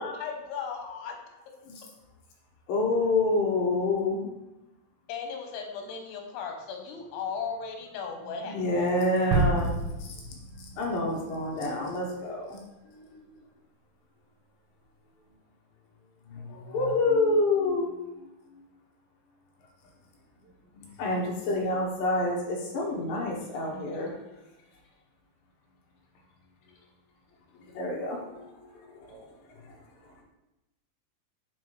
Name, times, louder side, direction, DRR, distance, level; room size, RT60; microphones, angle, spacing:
voice 1, 0.0-1.4 5.1-8.9, left 6 dB, 85° left, 3 dB, 3.0 m, -36 dB
voice 2, 2.7-4.3 8.5-12.6 12.8-13.2 16.3-17.9 20.8-24.1 27.7-29.1, left 2 dB, 70° left, -1 dB, 2.5 m, -28 dB
sound 1, 9.3-11.2, right 2 dB, 90° right, 2.8 m, -28 dB
voice 3, 29.1-30.2, right 2 dB, 70° right, -1 dB, 2.9 m, -58 dB
7.4 x 4.5 x 3.1 m, 0.97 s
omnidirectional pair, 4.6 m